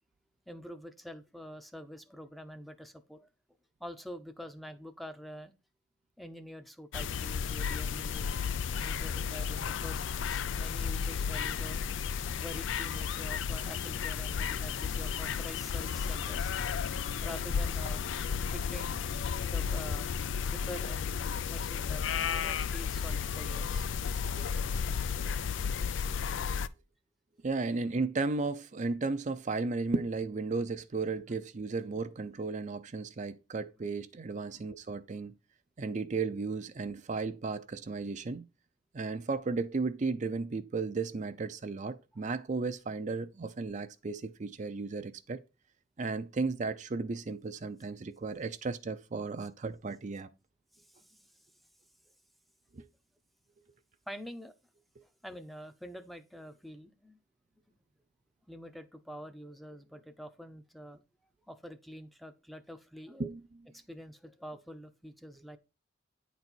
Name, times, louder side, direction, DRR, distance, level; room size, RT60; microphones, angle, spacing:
voice 1, 0.5-3.3 3.8-5.5 6.2-8.3 8.8-11.9 12.4-19.0 19.4-20.1 20.5-21.2 21.5-22.0 22.3-23.9 34.5-34.6 50.7-51.3 54.1-54.5 55.0-57.2 58.5-61.0 61.5-63.3 63.7-65.6, equal, ahead, 0.6 m, -46 dB
sound 1, 6.9-26.7, left 6 dB, 85° left, 0.4 m, -33 dB
voice 2, 27.4-35.3 35.8-38.4 38.9-45.4 46.0-50.3 52.7-52.8 63.2-63.4, right 3 dB, 40° right, 0.5 m, -34 dB
9.5 x 4.0 x 4.4 m
head